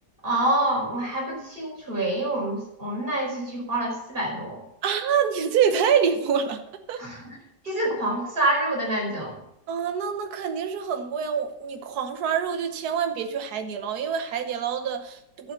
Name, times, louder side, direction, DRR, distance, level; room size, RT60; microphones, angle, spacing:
voice 1, 0.2-4.6 7.0-7.2 7.6-9.3, right 1 dB, 30° right, -3 dB, 5.0 m, -26 dB
voice 2, 4.8-6.6 6.9-7.0 9.7-15.5, right 7 dB, 65° right, 7 dB, 1.5 m, -26 dB
11.5 x 8.7 x 5.8 m, 0.82 s
omnidirectional pair, 1.9 m